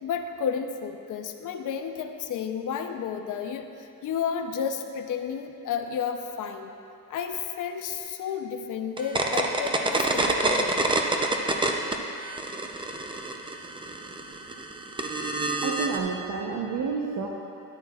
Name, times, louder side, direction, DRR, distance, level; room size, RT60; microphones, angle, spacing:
voice 1, 0.0-6.7 7.1-10.9, left 7 dB, 65° left, 6 dB, 0.7 m, -32 dB
sound 1, 9.0-12.0 12.3-16.0, right 2 dB, 15° right, 0.5 m, -27 dB
voice 2, 15.6-17.3, right 5 dB, 80° right, -1 dB, 0.9 m, -30 dB
13.5 x 10.0 x 2.4 m, 2.6 s
cardioid pair, 150°, 34 cm